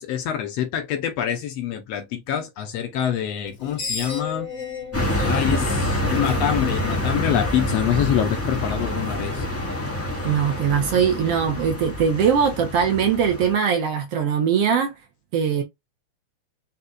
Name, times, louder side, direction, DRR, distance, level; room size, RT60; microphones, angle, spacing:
voice 1, 0.0-4.5 5.2-9.4, left 9 dB, 70° left, 1.7 m, -25 dB
Screech, 3.4-6.7, left 5 dB, 35° left, 1.9 m, -34 dB
sound 1, 4.9-13.5, left 1 dB, 10° left, 0.8 m, -26 dB
voice 2, 10.2-14.9 15.3-15.6, right 7 dB, 65° right, 1.7 m, -21 dB
5.1 x 4.1 x 2.3 m
omnidirectional pair, 3.4 m